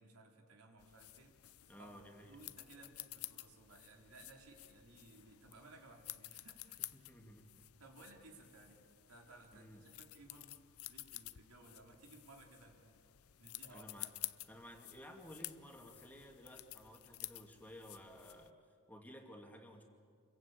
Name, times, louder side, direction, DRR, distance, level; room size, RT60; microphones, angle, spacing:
voice 1, 0.0-1.3 1.8-6.9 7.8-10.6 10.9-13.1 13.4-13.9, right 2 dB, 90° right, 1 dB, 4.0 m, -60 dB
sound 1, 0.8-18.5, left 17 dB, 80° left, 0.7 m, -52 dB
voice 2, 1.7-2.4 6.9-7.5 9.5-9.8 13.7-14.2 14.5-18.5 18.9-19.8, equal, 10° left, 2 dB, 2.4 m, -55 dB
28.0 x 23.0 x 8.5 m, 2.2 s
head